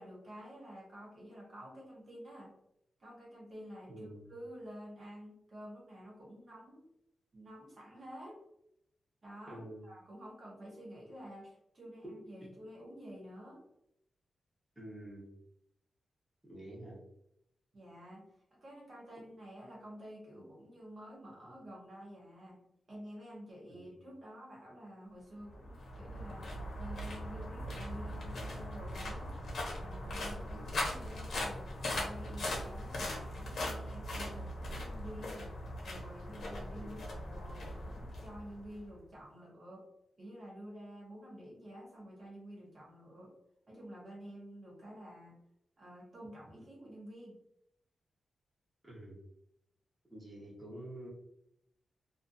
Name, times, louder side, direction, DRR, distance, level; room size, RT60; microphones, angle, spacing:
voice 1, 0.0-2.6 3.0-6.9 7.3-8.4 9.2-13.6 17.7-22.6 22.9-26.5 26.8-29.5 29.8-35.5 35.8-39.8 40.2-43.3 43.7-45.3 45.8-47.4, equal, 40° right, -4 dB, 0.8 m, -50 dB
voice 2, 3.9-4.3 9.5-9.8 14.8-15.3 16.5-17.0 23.7-23.9 30.5-30.7 36.8-37.0 48.8-49.2 50.1-51.1, right 1 dB, 5° right, -7 dB, 0.8 m, -48 dB
sound 1, 25.5-38.9, left 1 dB, 60° left, 0.7 m, -40 dB
2.4 x 2.4 x 2.5 m, 0.78 s
wide cardioid pair, 175°, 0 cm